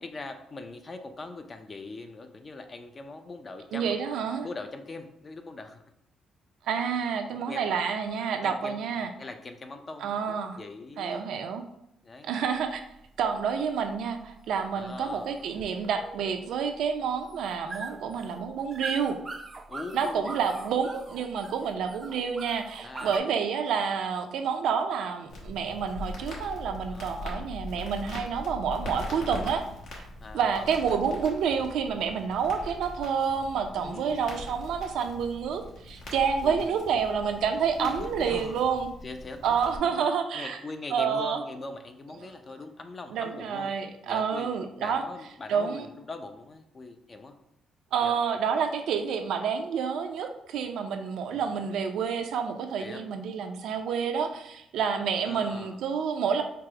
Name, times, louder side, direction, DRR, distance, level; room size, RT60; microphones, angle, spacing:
voice 1, 0.0-5.8 7.5-7.7 8.4-11.3 12.0-12.3 14.8-15.5 19.7-20.5 22.8-23.4 26.9-27.4 29.0-29.4 30.2-31.0 33.7-34.6 36.4-36.8 37.8-38.6 39.0-39.6 39.9-40.1 40.3-43.7 44.1-44.5 44.8-47.4 48.0-48.2 51.3-51.5 52.8-53.0 55.2-55.8, left 3 dB, 30° left, 7 dB, 0.4 m, -41 dB
voice 2, 3.7-4.5 6.6-9.1 10.0-10.6 11.0-11.6 12.2-12.8 13.2-19.2 19.9-29.6 29.9-30.1 30.3-38.9 39.4-40.6 40.9-41.4 43.1-45.0 45.5-45.9 47.9-56.4, right 6 dB, 80° right, 6 dB, 0.5 m, -29 dB
sound 1, 12.5-23.2, right 3 dB, 25° right, 0.4 m, -43 dB
Crackle, 25.3-39.8, left 2 dB, 75° left, 1.3 m, -41 dB
4.6 x 2.0 x 4.7 m, 0.79 s
cardioid pair, 115°, 0 cm